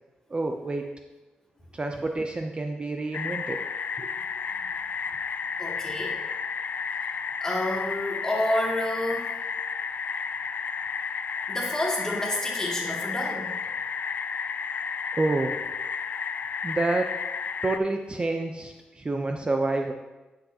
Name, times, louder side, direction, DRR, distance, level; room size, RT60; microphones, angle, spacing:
voice 1, 0.3-0.9 1.7-3.6 4.0-4.1 15.1-15.6 16.6-17.2 17.6-19.9, right 2 dB, 30° right, 4 dB, 0.6 m, -28 dB
sound 1, 3.1-17.8, left 6 dB, 60° left, 0.3 m, -32 dB
voice 2, 5.6-6.2 7.4-9.3 11.5-13.6, left 1 dB, 15° left, -3 dB, 2.3 m, -29 dB
10.0 x 6.5 x 2.8 m, 1.1 s
cardioid pair, 70°, 3 cm